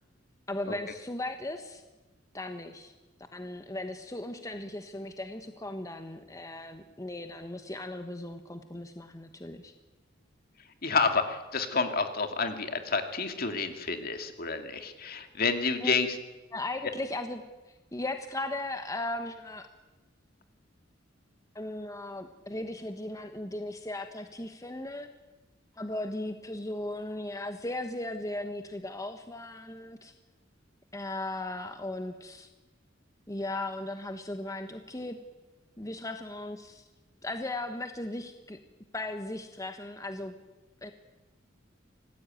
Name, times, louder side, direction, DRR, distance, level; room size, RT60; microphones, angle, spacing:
voice 1, 0.5-1.8 2.3-2.9 3.3-9.7 15.8-16.0 16.5-19.7 21.5-25.1 25.8-30.1 30.9-32.5 33.3-35.2 35.8-36.8 37.2-38.6 38.9-40.3 40.8-40.9, left 2 dB, 15° left, 7 dB, 1.2 m, -37 dB
voice 2, 10.8-16.1, left 4 dB, 50° left, 7 dB, 2.5 m, -29 dB
26.0 x 18.5 x 9.1 m, 1.2 s
head